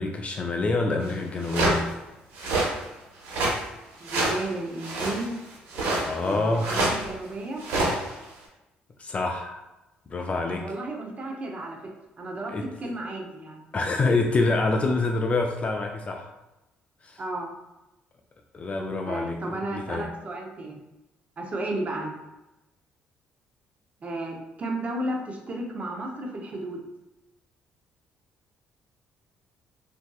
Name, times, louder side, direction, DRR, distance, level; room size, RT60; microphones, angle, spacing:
voice 1, 0.0-1.9 5.9-6.9 9.0-9.6 10.1-10.7 12.5-12.7 13.7-16.3 17.0-17.2 18.5-20.1, left 3 dB, 35° left, 3 dB, 0.3 m, -27 dB
sound 1, 1.1-1.2 1.4-1.8 2.4-2.7 3.2-3.6 4.0-4.4 4.8-5.3 5.7-6.3 6.6-7.1 7.6-8.2, right 2 dB, 80° right, 1.0 m, -26 dB
voice 2, 4.0-5.4 6.2-7.6 10.5-11.9 12.2-13.6 17.2-17.5 19.0-20.8 21.4-22.1 24.0-26.8, right 1 dB, 35° right, 0 dB, 0.7 m, -33 dB
3.5 x 2.6 x 2.3 m, 0.98 s
cardioid pair, 85°, 4 cm